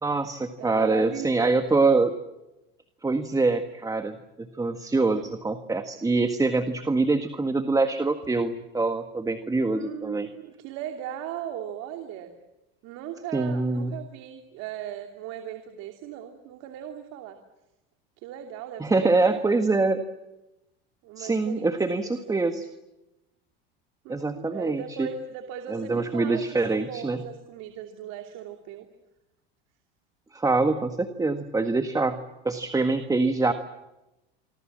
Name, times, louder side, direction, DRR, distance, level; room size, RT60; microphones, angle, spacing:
voice 1, 0.0-2.1 3.0-10.3 13.3-13.9 18.8-20.0 21.2-22.7 24.1-25.1 25.7-27.2 30.3-32.1 32.4-33.5, right 3 dB, 10° right, 8 dB, 1.6 m, -24 dB
voice 2, 0.6-1.5 9.6-12.3 12.8-17.4 18.2-19.4 21.0-22.5 24.0-28.9, right 9 dB, 60° right, 5 dB, 3.0 m, -38 dB
26.0 x 25.0 x 7.5 m, 0.98 s
supercardioid pair, 100°, 29 cm